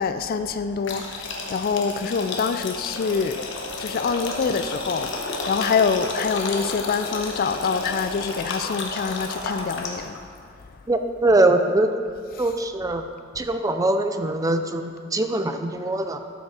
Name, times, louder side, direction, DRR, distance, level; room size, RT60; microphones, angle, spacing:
voice 1, 0.0-3.4 3.8-10.2 12.3-12.5, left 5 dB, 45° left, 10 dB, 0.4 m, -25 dB
sound 1, 0.8-10.2, left 3 dB, 65° left, 1.1 m, -32 dB
voice 2, 10.9-12.0 12.4-13.0 13.4-16.2, right 2 dB, 15° right, 7 dB, 0.5 m, -22 dB
12.5 x 6.1 x 4.3 m, 2.3 s
head